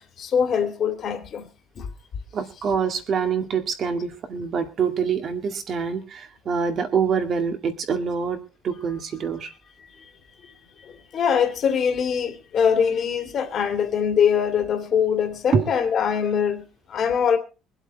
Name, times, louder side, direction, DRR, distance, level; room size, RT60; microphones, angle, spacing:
voice 1, 0.0-1.5 1.7-1.9 10.4-10.5 10.8-17.4, left 7 dB, 40° left, 2.3 m, -23 dB
voice 2, 2.3-9.5 15.5-15.6, right 6 dB, 35° right, 2.1 m, -25 dB
23.5 x 8.0 x 4.0 m
cardioid pair, 165°, 0 cm